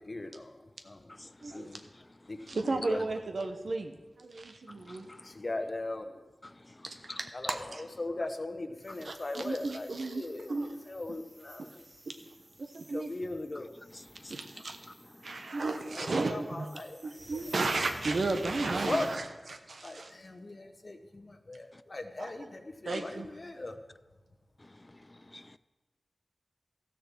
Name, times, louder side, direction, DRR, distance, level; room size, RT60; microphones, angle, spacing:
voice 1, 0.0-1.1 1.5-1.8 2.3-2.4 2.6-3.0 5.2-6.2 7.3-7.6 8.0-11.9 12.9-13.7 15.8-17.0 18.6-19.1 19.8-23.8, left 2 dB, 50° left, 1.0 m, -39 dB
voice 2, 1.2-1.6 4.7-5.3 6.4-6.5 6.8-7.2 13.9-14.3 15.2-15.4 25.1-25.6, left 1 dB, 30° left, 0.3 m, -50 dB
voice 3, 2.5-5.1 7.2-7.8 9.0-10.8 11.6-11.7 12.1-12.2 12.6-13.1 14.3-14.9 15.2-20.1 22.2-22.3 22.8-23.3, right 3 dB, 80° right, 1.0 m, -34 dB
sound 1, 8.8-19.2, right 1 dB, 60° right, 2.4 m, -53 dB
14.0 x 6.7 x 6.1 m
wide cardioid pair, 55°, 0 cm